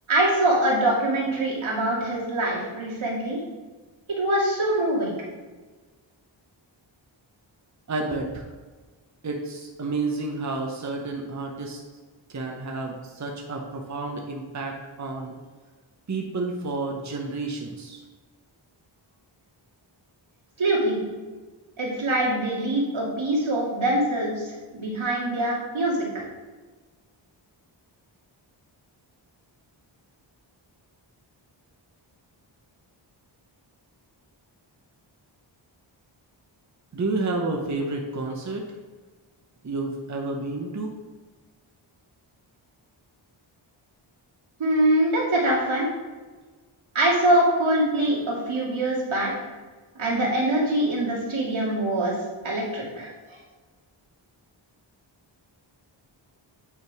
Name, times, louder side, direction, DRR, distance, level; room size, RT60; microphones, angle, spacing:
voice 1, 0.1-3.4 4.2-5.1 20.6-21.0 21.8-26.3 44.6-45.9 46.9-49.3 50.0-52.1 52.4-53.1, right 1 dB, 80° right, -5 dB, 2.2 m, -24 dB
voice 2, 7.9-8.5 9.2-11.8 12.3-15.3 16.1-18.0 36.9-38.6 39.6-40.9, right 3 dB, 35° right, 1 dB, 0.8 m, -30 dB
8.2 x 3.7 x 4.7 m, 1.3 s
wide cardioid pair, 95°, 47 cm